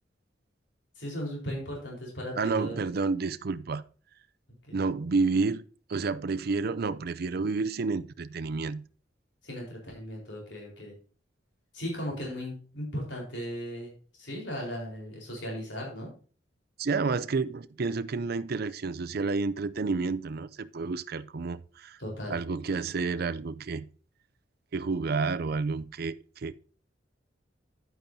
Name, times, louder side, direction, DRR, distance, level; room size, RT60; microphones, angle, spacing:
voice 1, 1.0-2.8 4.6-4.8 9.4-10.9 11.7-13.9 14.2-16.1 22.0-22.4, equal, 70° left, 4.3 m, -37 dB
voice 2, 2.4-3.8 4.7-5.6 5.9-8.8 16.8-22.0 22.3-23.9 24.7-26.5, right 4 dB, 55° right, 0.5 m, -30 dB
10.5 x 9.1 x 2.8 m
head